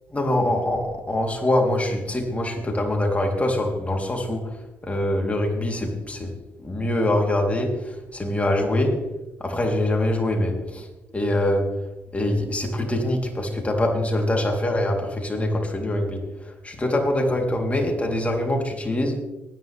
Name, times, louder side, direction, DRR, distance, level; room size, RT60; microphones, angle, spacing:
voice 1, 0.1-4.5 4.8-6.3 6.6-9.0 9.4-10.9 11.1-11.7 12.1-19.2, left 1 dB, 25° left, 1 dB, 3.8 m, -24 dB
19.5 x 10.5 x 3.6 m, 1.0 s
hypercardioid pair, 50°, 5 cm